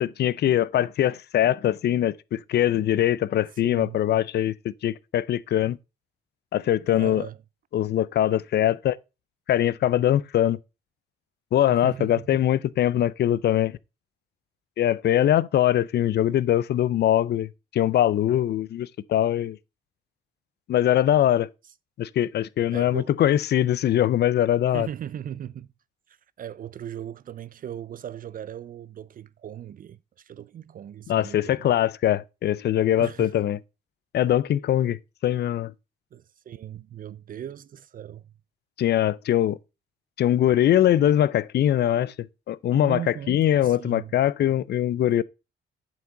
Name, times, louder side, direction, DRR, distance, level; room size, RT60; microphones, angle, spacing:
voice 1, 0.0-5.8 6.5-7.3 7.7-9.0 9.5-10.6 11.5-13.8 14.8-19.6 20.7-21.5 22.0-24.9 31.1-33.6 34.1-35.7 38.8-39.6 40.2-42.1 42.5-45.2, left 11 dB, 55° left, 0.5 m, -22 dB
voice 2, 3.6-4.0 7.0-7.4 11.7-12.1 22.7-23.1 24.7-25.7 26.4-30.0 30.2-31.6 33.0-33.3 36.1-38.2 42.7-44.2, right 10 dB, 45° right, 0.4 m, -38 dB
7.3 x 6.0 x 3.8 m
cardioid pair, 90°, 20 cm